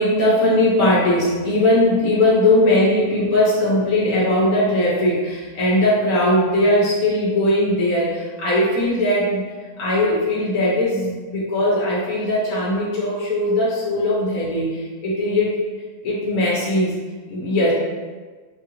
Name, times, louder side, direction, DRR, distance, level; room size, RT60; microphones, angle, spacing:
voice 1, 0.0-15.5 16.0-17.0 17.3-17.7, left 1 dB, 65° left, -6 dB, 1.2 m, -19 dB
4.0 x 2.4 x 3.0 m, 1.4 s
omnidirectional pair, 1.7 m